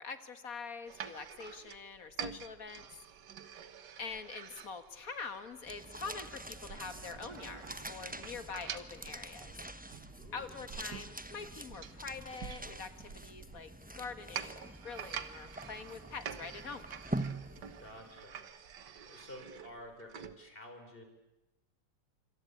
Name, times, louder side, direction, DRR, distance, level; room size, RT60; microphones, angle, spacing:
voice 1, 0.0-2.9 4.0-9.5 10.3-16.9, left 5 dB, 50° left, 10 dB, 2.0 m, -45 dB
sound 1, 0.9-20.4, right 8 dB, 70° right, 1.9 m, -48 dB
sound 2, 5.6-18.2, right 1 dB, 5° right, 0.7 m, -45 dB
voice 2, 10.2-10.5 17.8-18.4 19.0-21.0, left 1 dB, 30° left, 5 dB, 4.9 m, -51 dB
26.5 x 26.5 x 8.5 m, 0.95 s
omnidirectional pair, 1.9 m